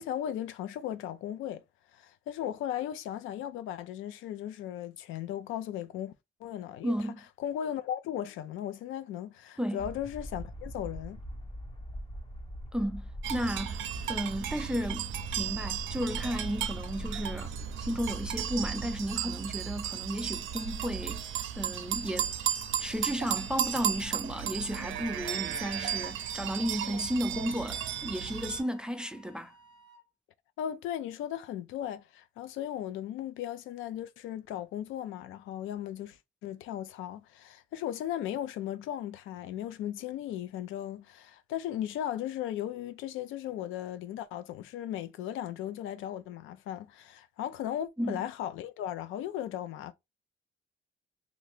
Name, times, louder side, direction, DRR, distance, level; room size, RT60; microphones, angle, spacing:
voice 1, 0.0-1.6 1.9-6.1 6.4-7.0 7.4-11.2 30.6-49.9, left 11 dB, 85° left, 0.4 m, -37 dB
voice 2, 6.8-7.2 9.6-9.8 12.7-15.1 15.4-17.5 17.8-22.3 22.8-29.5 48.0-48.2, equal, 5° right, 0.4 m, -33 dB
sound 1, 9.8-19.1, equal, 25° left, 0.7 m, -42 dB
sound 2, 13.2-28.6, right 10 dB, 75° right, 0.5 m, -35 dB
Wind instrument woodwind instrument, 25.6-30.1, right 3 dB, 55° left, 0.8 m, -58 dB
2.8 x 2.5 x 3.2 m
cardioid pair, 90°, 20 cm